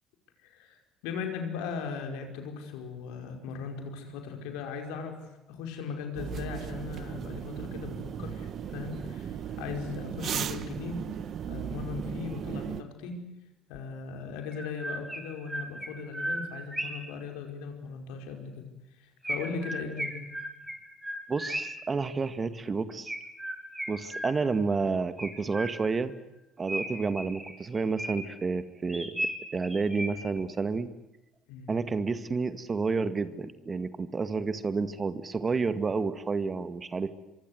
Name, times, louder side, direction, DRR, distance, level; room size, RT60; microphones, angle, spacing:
voice 1, 0.4-11.1 11.5-13.2 13.7-18.7 19.0-20.2 31.5-31.7, left 5 dB, 75° left, 4 dB, 5.2 m, -38 dB
sound 1, 6.2-12.8, right 8 dB, 55° right, 1.5 m, -36 dB
Chirp tweet, 13.7-13.8 14.5-17.1 19.2-21.9 23.1-24.6 25.2-26.1 26.7-28.4 28.9-30.4, right 1 dB, 10° right, 6.4 m, -36 dB
voice 2, 21.3-23.1 23.9-26.1 26.6-30.9 31.7-37.1, right 4 dB, 30° right, 11 dB, 2.0 m, -30 dB
25.5 x 24.5 x 8.1 m, 0.97 s
hypercardioid pair, 65°, 0 cm